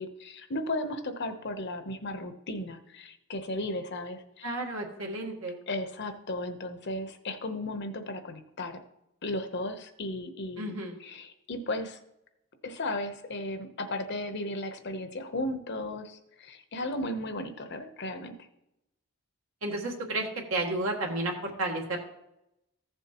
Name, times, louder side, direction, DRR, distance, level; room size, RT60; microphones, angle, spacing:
voice 1, 0.0-4.6 5.7-8.8 9.2-10.7 11.0-12.0 12.6-18.4, left 1 dB, 55° left, 8 dB, 0.9 m, -35 dB
voice 2, 4.4-5.6 10.6-11.0 19.6-22.1, right 2 dB, 70° right, 0 dB, 1.4 m, -32 dB
15.0 x 7.1 x 3.0 m, 0.87 s
head